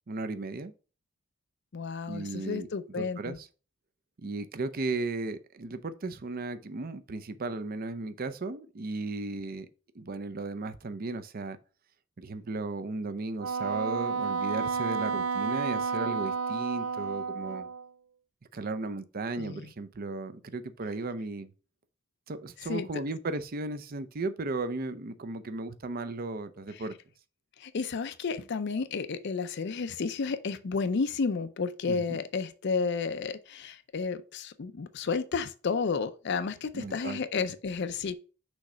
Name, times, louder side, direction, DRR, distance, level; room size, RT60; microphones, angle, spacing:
voice 1, 0.1-0.7 2.1-2.7 3.0-3.4 4.2-9.7 10.0-11.6 12.2-17.7 18.5-21.5 22.3-26.9 31.9-32.0 36.7-37.5, right 3 dB, 45° right, 0.6 m, -35 dB
voice 2, 1.7-3.4 19.4-19.7 22.6-22.9 26.7-26.8 27.6-38.2, left 5 dB, 55° left, 0.5 m, -32 dB
Wind instrument woodwind instrument, 13.4-17.9, right 5 dB, 90° right, 0.4 m, -31 dB
6.3 x 3.2 x 5.0 m
head